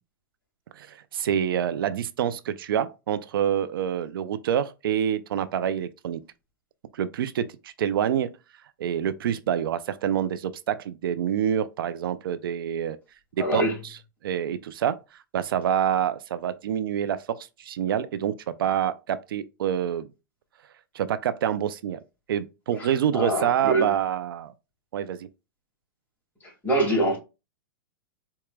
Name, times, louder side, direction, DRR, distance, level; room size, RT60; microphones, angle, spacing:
voice 1, 0.7-6.2 6.9-8.3 8.8-13.0 13.5-13.6 14.2-15.0 15.3-20.1 20.9-22.0 22.3-24.5 24.9-25.3, right 9 dB, 75° right, 0.4 m, -27 dB
voice 2, 13.4-13.8 22.8-23.9 26.4-27.2, right 1 dB, 15° left, 2.1 m, -25 dB
4.6 x 2.9 x 2.2 m
hypercardioid pair, 130°, 12 cm